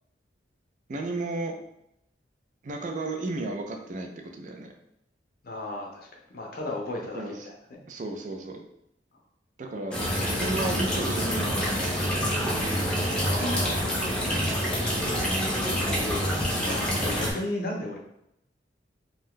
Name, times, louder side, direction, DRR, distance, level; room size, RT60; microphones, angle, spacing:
voice 1, 0.9-1.5 2.6-4.7 7.1-7.5 7.9-8.6 9.6-12.3, right 2 dB, 45° right, 4 dB, 0.4 m, -34 dB
voice 2, 5.4-7.8 13.2-14.7 15.8-18.0, left 2 dB, 55° left, 0 dB, 0.5 m, -36 dB
sound 1, 9.9-17.3, equal, 5° left, 0.5 m, -27 dB
2.6 x 2.3 x 3.5 m, 0.79 s
head